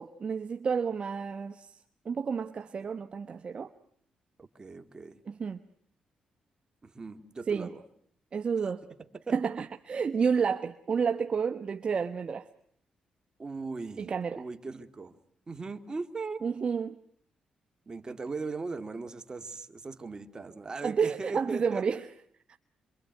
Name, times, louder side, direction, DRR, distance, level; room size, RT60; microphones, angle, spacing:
voice 1, 0.0-3.7 5.3-5.6 7.5-7.7 8.3-8.8 9.3-12.5 14.0-14.4 16.4-17.0 20.8-22.0, right 6 dB, 45° right, 1.1 m, -30 dB
voice 2, 4.4-5.2 6.8-7.8 9.1-9.4 13.4-14.1 14.4-15.1 15.5-16.4 17.9-21.9, right 4 dB, 30° right, 2.2 m, -39 dB
27.0 x 23.5 x 9.4 m
cardioid pair, 85°, 2 cm